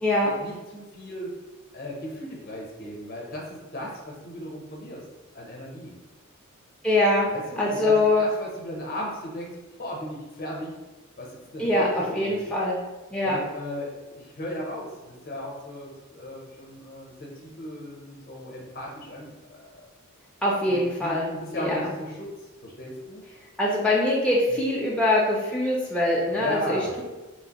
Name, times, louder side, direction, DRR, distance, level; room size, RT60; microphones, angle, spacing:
voice 1, 0.2-1.3 1.7-5.0 5.3-5.9 7.3-9.5 9.8-10.8 11.2-12.6 13.2-19.8 20.7-22.3 22.6-23.2 26.3-26.9, left 1 dB, 45° left, -2 dB, 0.6 m, -36 dB
voice 2, 6.8-7.3 7.6-8.2 11.6-12.8 13.1-13.4 20.4-21.9 23.6-26.8, left 1 dB, 5° left, -5 dB, 0.3 m, -23 dB
3.0 x 2.4 x 2.8 m, 1.2 s
head